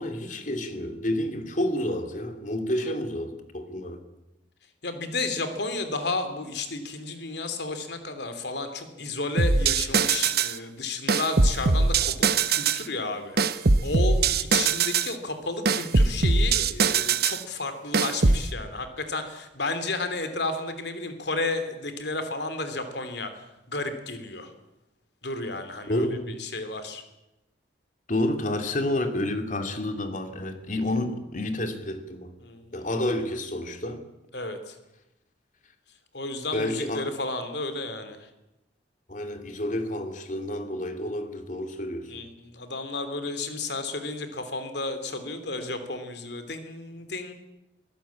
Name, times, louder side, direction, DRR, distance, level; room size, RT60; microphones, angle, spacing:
voice 1, 0.0-4.0 25.9-26.4 28.1-32.3 32.7-34.0 36.5-37.1 39.1-42.2, left 1 dB, 40° left, 2.6 m, -29 dB
voice 2, 4.8-23.4 23.7-24.5 25.2-26.0 26.4-27.0 32.4-33.0 34.3-34.7 36.1-38.3 42.1-47.3, left 3 dB, 60° left, 3.2 m, -32 dB
sound 1, 9.4-10.6 11.1-12.8 13.4-15.1 15.7-17.4 17.9-18.5, right 4 dB, 55° right, 1.0 m, -22 dB
23.5 x 17.0 x 8.7 m
head